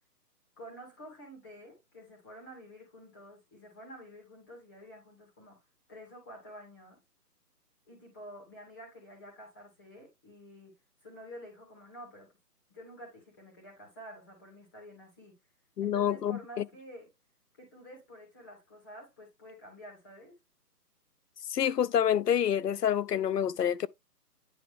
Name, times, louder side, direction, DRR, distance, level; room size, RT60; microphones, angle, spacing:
voice 1, 0.6-5.6 5.9-7.0 7.9-12.3 12.7-15.3 15.8-17.1 17.6-20.3, equal, 15° left, 2.2 m, -50 dB
voice 2, 15.8-16.6 21.5-23.9, left 9 dB, 75° left, 0.7 m, -27 dB
10.0 x 3.3 x 3.4 m
hypercardioid pair, 175°, 48 cm